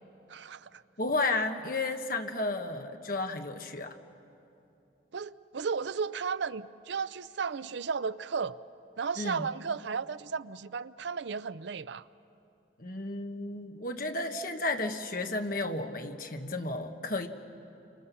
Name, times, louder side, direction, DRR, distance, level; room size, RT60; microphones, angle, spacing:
voice 1, 0.3-0.8 5.1-8.6 9.0-12.0, right 5 dB, 65° right, 16 dB, 0.5 m, -34 dB
voice 2, 1.0-4.0 9.2-9.5 12.8-17.3, left 2 dB, 45° left, 5 dB, 1.3 m, -33 dB
29.5 x 25.0 x 7.0 m, 2.9 s
head